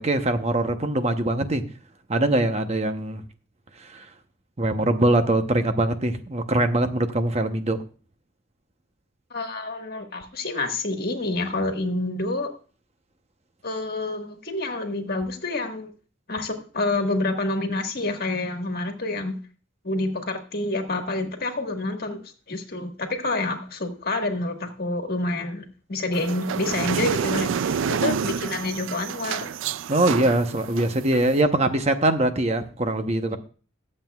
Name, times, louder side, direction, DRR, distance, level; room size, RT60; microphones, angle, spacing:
voice 1, 0.0-1.6 2.1-3.2 3.8-4.1 4.6-7.8 29.9-33.4, right 1 dB, 30° right, 8 dB, 0.9 m, -22 dB
voice 2, 9.3-12.5 13.6-15.9 16.3-19.4 19.8-29.5, left 2 dB, 50° left, 4 dB, 1.6 m, -28 dB
sound 1, 26.1-31.4, right 7 dB, 70° right, 0.4 m, -28 dB
21.5 x 7.6 x 2.4 m, 0.38 s
head